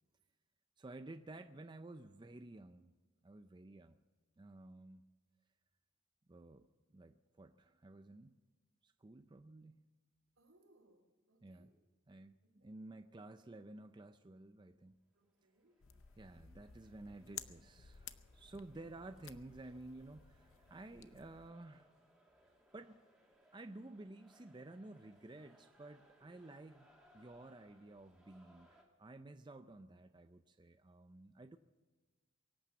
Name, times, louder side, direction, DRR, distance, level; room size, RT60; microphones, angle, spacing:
voice 1, 0.8-2.9 3.2-4.0 4.4-5.0 6.3-8.3 8.8-9.8 11.4-11.7 12.1-15.0 16.2-21.9 22.7-23.0 23.5-26.9 27.1-31.6, right 2 dB, 20° right, 8 dB, 0.4 m, -53 dB
voice 2, 10.4-11.7 12.4-12.7 15.1-15.8 18.6-18.8, right 1 dB, 75° right, 1 dB, 3.3 m, -71 dB
sound 1, 15.2-28.8, equal, ahead, 2.3 m, -70 dB
sound 2, 15.8-21.5, left 9 dB, 70° left, 0.7 m, -55 dB
23.0 x 8.8 x 7.0 m, 1.2 s
head